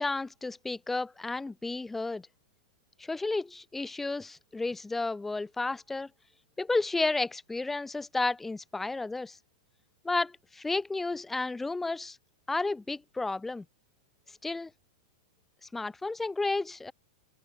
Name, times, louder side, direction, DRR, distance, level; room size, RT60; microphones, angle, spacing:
voice 1, 0.0-2.3 3.0-6.1 6.6-9.4 10.0-12.2 12.5-13.6 14.4-14.7 15.7-16.9, left 3 dB, 5° left, 3.1 m, -32 dB
open air
supercardioid pair, 145°, 3 cm